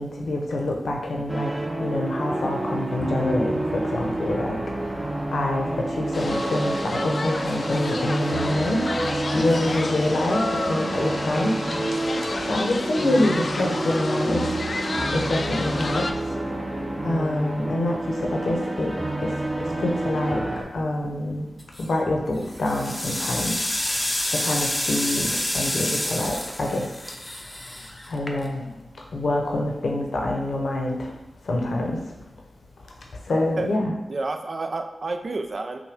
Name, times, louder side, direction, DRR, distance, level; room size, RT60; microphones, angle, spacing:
voice 1, 0.0-1.5 1.8-4.6 5.3-8.8 9.3-10.4 10.7-11.6 12.5-14.4 15.1-16.1 17.0-18.9 19.2-19.3 19.8-20.4 20.7-21.5 21.8-23.5 24.3-26.9 28.1-28.6 29.1-31.1 31.5-32.0 33.3-34.0, left 1 dB, 80° left, 1 dB, 0.7 m, -26 dB
sound 1, 1.3-20.6, right 1 dB, 20° right, 0.7 m, -29 dB
sound 2, 6.1-16.1, left 2 dB, 60° left, 0.4 m, -31 dB
sound 3, 21.6-22.0 22.5-28.7, left 1 dB, 20° left, 0.6 m, -28 dB
voice 2, 34.1-35.8, right 3 dB, 55° right, 5 dB, 0.4 m, -30 dB
5.8 x 2.2 x 3.5 m, 1.0 s
cardioid pair, 55°, 0 cm